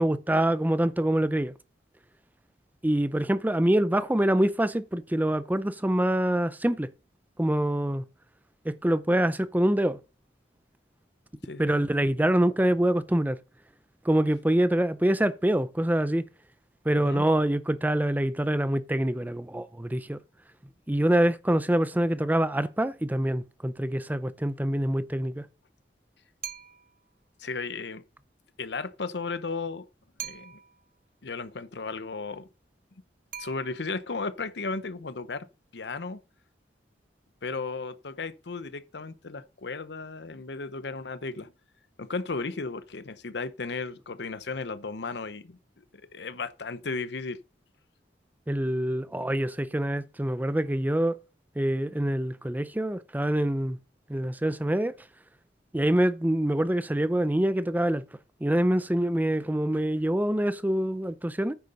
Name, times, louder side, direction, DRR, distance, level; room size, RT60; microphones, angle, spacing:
voice 1, 0.0-1.5 2.8-6.9 7.4-8.0 8.7-10.0 11.6-13.4 14.0-16.2 16.9-20.2 20.9-25.4 48.5-51.2 51.6-53.8 54.1-54.9 55.7-58.0 58.4-61.5, right 1 dB, 10° right, 0.5 m, -25 dB
voice 2, 11.4-11.8 16.9-17.2 27.4-28.0 28.6-29.9 30.2-30.6 31.2-32.5 33.4-35.5 35.7-36.2 37.4-41.5 42.0-47.4, left 4 dB, 65° left, 0.8 m, -35 dB
sound 1, 26.4-27.0 30.2-30.9 33.3-34.1, right 10 dB, 50° right, 0.8 m, -42 dB
9.5 x 6.6 x 5.3 m
head